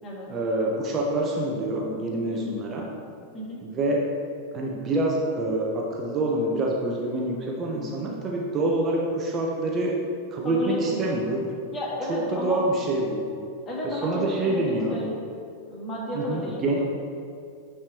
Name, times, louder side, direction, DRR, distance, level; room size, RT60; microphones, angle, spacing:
voice 1, 0.3-2.9 3.6-4.0 4.5-10.0 10.3-11.6 12.1-13.3 13.8-15.0 16.1-16.8, right 1 dB, 30° right, -1 dB, 1.0 m, -26 dB
voice 2, 10.4-11.1 11.7-12.7 13.7-15.1 15.7-16.9, equal, 25° left, -4 dB, 2.0 m, -32 dB
8.9 x 4.9 x 4.5 m, 2.3 s
figure-of-eight pair, 90°, 0 cm